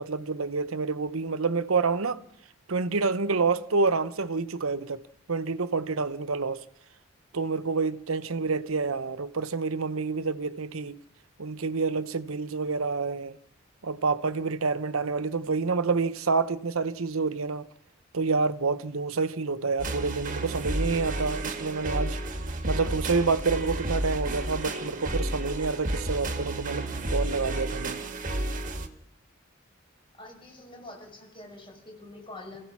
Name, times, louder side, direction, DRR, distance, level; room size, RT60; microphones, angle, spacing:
voice 1, 0.0-2.2 2.7-5.0 5.3-6.6 7.3-11.0 11.4-13.4 13.8-17.7 18.1-22.2 22.6-28.0, right 4 dB, 90° right, 0.9 m, -28 dB
sound 1, 19.8-28.9, right 1 dB, 40° right, 1.6 m, -31 dB
voice 2, 30.2-32.6, left 2 dB, 25° left, 5.5 m, -45 dB
26.5 x 16.0 x 6.1 m
head